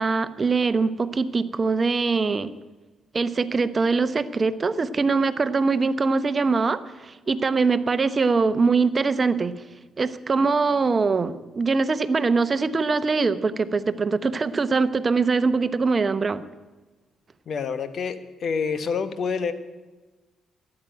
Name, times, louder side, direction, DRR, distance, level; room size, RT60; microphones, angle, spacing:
voice 1, 0.0-2.5 3.1-9.6 10.0-16.4, right 4 dB, 40° right, 14 dB, 0.8 m, -23 dB
voice 2, 17.5-19.5, left 5 dB, 55° left, 12 dB, 1.1 m, -27 dB
13.5 x 8.8 x 9.1 m, 1.2 s
hypercardioid pair, 40°, 0 cm